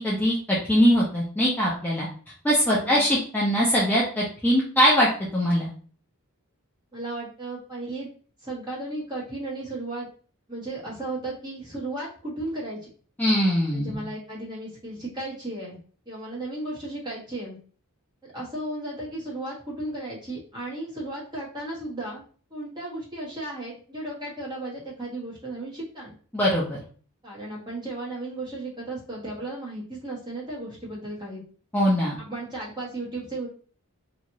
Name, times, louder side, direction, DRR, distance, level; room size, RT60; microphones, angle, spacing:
voice 1, 0.0-2.1 2.4-5.7 13.2-14.0 26.3-26.8 31.7-32.2, equal, 5° left, -6 dB, 0.5 m, -22 dB
voice 2, 6.9-8.1 8.4-10.1 10.5-12.8 13.7-15.8 16.0-17.6 18.2-22.2 22.5-26.1 27.2-31.4 32.2-33.5, right 2 dB, 20° right, -5 dB, 1.1 m, -35 dB
2.9 x 2.4 x 2.6 m, 0.43 s
head